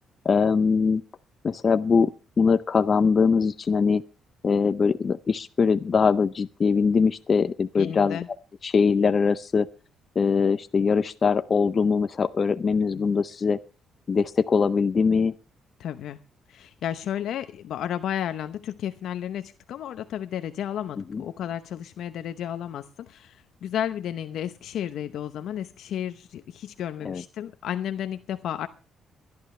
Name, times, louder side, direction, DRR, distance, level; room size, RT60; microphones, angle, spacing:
voice 1, 0.2-1.0 1.4-2.1 2.4-4.0 4.4-8.2 8.6-9.7 10.2-13.6 14.1-15.3 21.1-21.2 27.0-27.2, left 5 dB, 40° left, 11 dB, 0.6 m, -22 dB
voice 2, 7.8-8.3 12.9-13.1 15.8-16.2 16.5-28.7, left 10 dB, 75° left, 10 dB, 0.8 m, -32 dB
23.0 x 11.5 x 3.3 m, 0.34 s
cardioid pair, 90°, 0 cm